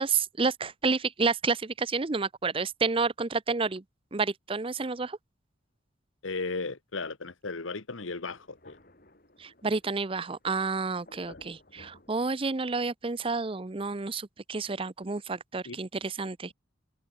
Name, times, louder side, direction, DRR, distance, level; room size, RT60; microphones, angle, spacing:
voice 1, 0.0-3.8 4.1-5.2 9.4-16.5, right 4 dB, 30° right, 0.6 m, -30 dB
voice 2, 6.2-8.8 11.3-11.4 15.6-15.8, left 3 dB, 90° left, 1.5 m, -35 dB
Thunder, 8.1-12.9, left 1 dB, 50° left, 6.4 m, -58 dB
open air
head